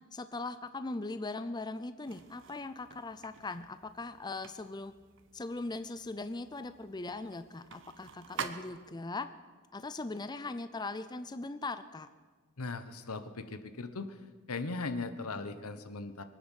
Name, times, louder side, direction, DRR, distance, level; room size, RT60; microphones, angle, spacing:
voice 1, 0.1-4.9 5.3-9.3 9.7-12.1, left 3 dB, 20° left, 11 dB, 0.5 m, -40 dB
sound 1, 2.1-9.1, right 6 dB, 60° right, 1.0 m, -47 dB
voice 2, 12.6-14.2 14.5-16.2, left 3 dB, 85° left, 10 dB, 1.2 m, -38 dB
23.0 x 9.4 x 6.5 m, 1.4 s
head